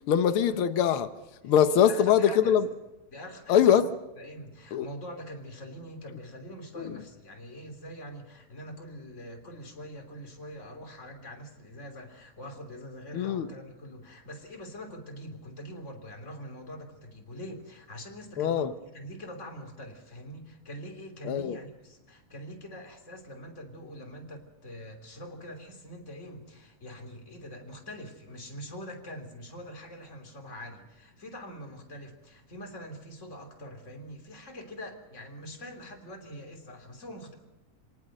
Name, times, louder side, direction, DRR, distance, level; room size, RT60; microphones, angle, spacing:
voice 1, 0.1-1.1 1.4-2.7 3.5-3.8 4.7-4.9 6.8-6.9 13.1-13.5 18.4-18.7 21.2-21.6, left 9 dB, 70° left, 1.2 m, -23 dB
voice 2, 1.4-2.6 3.1-3.8 4.2-37.3, equal, 20° left, 3.1 m, -44 dB
26.0 x 18.5 x 6.5 m
omnidirectional pair, 3.7 m